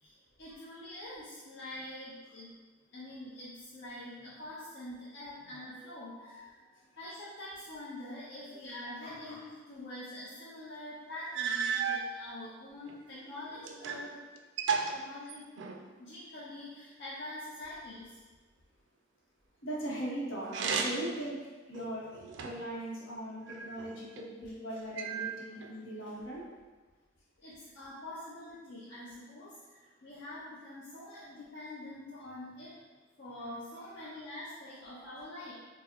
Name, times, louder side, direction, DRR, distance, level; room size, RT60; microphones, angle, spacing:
voice 1, 0.0-2.6 2.9-14.2 14.9-15.7 16.0-18.2 27.4-32.8 33.2-35.5, left 1 dB, 55° left, -8 dB, 0.6 m, -45 dB
sound 1, 10.8-10.9 11.3-12.1 12.9-14.1 14.4-15.9 20.4-21.2 21.7-22.7 23.5-24.3 25.0-25.7, right 5 dB, 60° right, 0.3 m, -34 dB
voice 2, 19.6-21.4 21.7-26.4, right 1 dB, 75° left, -5 dB, 0.9 m, -39 dB
4.6 x 2.0 x 2.9 m, 1.3 s
head